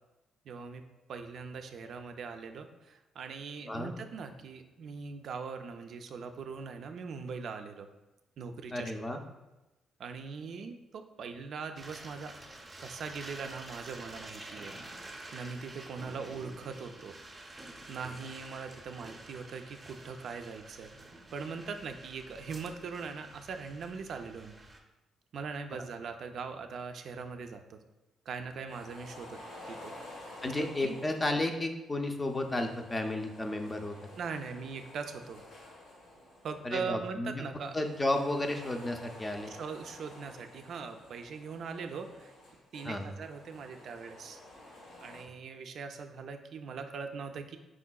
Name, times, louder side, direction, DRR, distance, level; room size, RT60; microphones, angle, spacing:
voice 1, 0.5-0.8 1.1-7.9 8.4-9.2 10.0-12.3 12.8-14.7 15.3-17.2 17.9-20.9 21.3-24.6 25.3-27.8 28.3-29.4 29.7-29.9 30.2-31.0 34.2-35.4 36.4-37.8 39.5-42.3 42.7-44.4 45.0-47.6, right 5 dB, 65° right, 6 dB, 0.3 m, -41 dB
voice 2, 8.7-9.2 25.7-25.8 30.4-34.0 36.6-37.4 37.7-39.5 42.8-43.1, left 1 dB, 20° left, 5 dB, 0.5 m, -33 dB
sound 1, 11.8-24.8, right 2 dB, 20° right, 0.6 m, -49 dB
sound 2, 28.7-31.5 32.1-36.9 37.5-45.2, left 1 dB, 90° left, 1.4 m, -51 dB
4.8 x 3.6 x 2.2 m, 1.0 s
cardioid pair, 90°, 0 cm